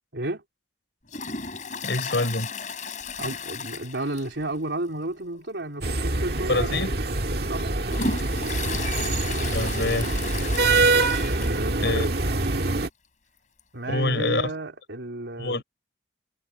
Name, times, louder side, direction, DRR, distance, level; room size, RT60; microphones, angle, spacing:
voice 1, 0.1-0.4 3.2-6.8 7.5-7.7 11.3-12.2 13.7-15.6, right 2 dB, 85° right, 3.9 m, -32 dB
Toilet flush, 1.1-4.5 4.8-4.9 5.3-5.4 6.3-6.4 6.9-11.9 12.2-12.3 12.4-12.5 13.6-13.7, left 4 dB, 45° left, 5.9 m, -34 dB
voice 2, 1.8-2.5 6.5-6.9 9.4-10.1 11.8-12.1 13.9-14.5 15.4-15.6, left 2 dB, 75° left, 4.7 m, -26 dB
sound 1, 5.8-12.9, right 3 dB, 60° right, 1.9 m, -25 dB
head